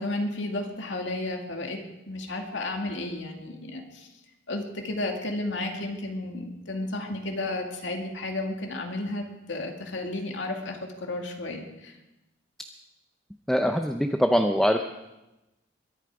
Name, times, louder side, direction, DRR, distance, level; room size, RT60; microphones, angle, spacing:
voice 1, 0.0-4.1 4.5-12.0, left 2 dB, 75° left, 2 dB, 2.4 m, -33 dB
voice 2, 13.5-14.9, equal, ahead, 5 dB, 0.6 m, -23 dB
22.5 x 11.5 x 4.9 m, 0.97 s
head